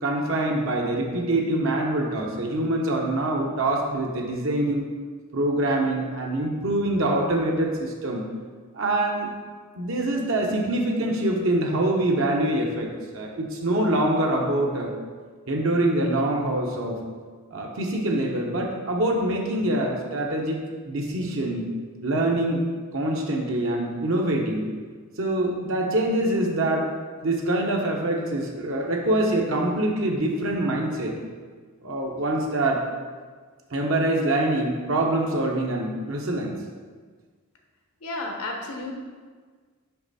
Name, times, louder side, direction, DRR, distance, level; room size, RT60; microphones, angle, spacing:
voice 1, 0.0-4.9 5.3-8.2 8.7-9.3 9.8-14.9 15.5-17.0 17.5-20.6 20.8-21.7 22.0-22.6 22.9-24.6 25.2-26.9 27.2-31.1 31.8-32.9 33.7-36.5, right 1 dB, 60° right, 0 dB, 0.9 m, -25 dB
voice 2, 38.0-38.9, left 2 dB, 80° left, 2 dB, 1.1 m, -32 dB
5.8 x 5.3 x 4.1 m, 1.5 s
head